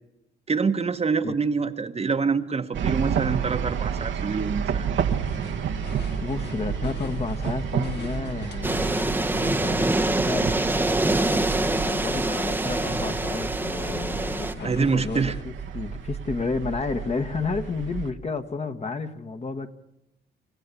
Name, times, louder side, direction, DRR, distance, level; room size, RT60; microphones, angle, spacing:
voice 1, 0.5-4.9 14.6-15.3, right 5 dB, 30° right, 7 dB, 1.2 m, -26 dB
sound 1, 2.7-18.1, right 7 dB, 70° right, 1.3 m, -31 dB
sound 2, 5.1-15.4, left 5 dB, 60° left, 1.7 m, -41 dB
voice 2, 6.2-10.8 11.1-19.7, left 4 dB, 30° left, 8 dB, 1.5 m, -32 dB
sound 3, 8.6-14.5, right 2 dB, 10° right, 0.9 m, -25 dB
28.5 x 15.5 x 8.4 m, 0.86 s
cardioid pair, 90°, 20 cm